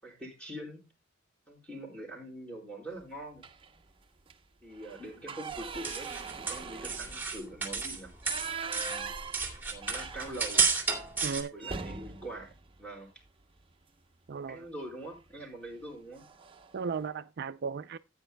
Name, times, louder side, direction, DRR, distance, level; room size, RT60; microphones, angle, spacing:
voice 1, 0.0-0.9 1.5-3.5 4.6-8.1 8.7-9.1 9.7-10.7 11.5-13.1 14.5-16.3, right 1 dB, 5° left, 4.9 m, -44 dB
sound 1, 3.4-3.8 4.2-4.3 4.7-10.8 11.1-11.2 11.6-13.7 15.1-15.3 15.7-15.9 16.1-16.8, right 5 dB, 25° right, 0.8 m, -42 dB
sound 2, 5.5-8.0 8.3-11.4, right 4 dB, 10° right, 2.2 m, -31 dB
voice 2, 11.2-11.5 14.3-14.7 16.7-18.0, right 5 dB, 55° right, 0.4 m, -35 dB
15.0 x 9.1 x 2.2 m
head